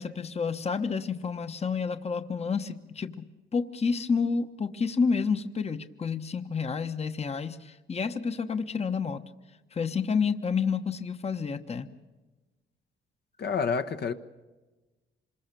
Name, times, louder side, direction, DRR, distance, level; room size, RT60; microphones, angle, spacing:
voice 1, 0.0-3.3 3.5-9.2 9.7-11.9, left 5 dB, 30° left, 1.1 m, -29 dB
voice 2, 13.4-14.1, left 6 dB, 55° left, 1.1 m, -28 dB
26.5 x 21.0 x 6.9 m
cardioid pair, 90°, 20 cm